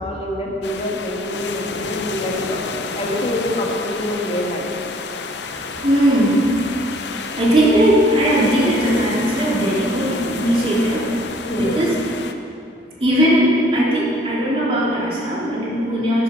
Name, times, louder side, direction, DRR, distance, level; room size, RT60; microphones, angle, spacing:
voice 1, 0.0-2.6 3.0-4.7 11.5-11.8, left 1 dB, 35° left, -1 dB, 1.6 m, -25 dB
sound 1, 0.6-12.3, left 5 dB, 80° left, 0.7 m, -30 dB
voice 2, 5.4-6.6 7.3-11.9 13.0-16.2, equal, 30° right, -6 dB, 2.8 m, -18 dB
11.5 x 10.5 x 5.5 m, 2.5 s
head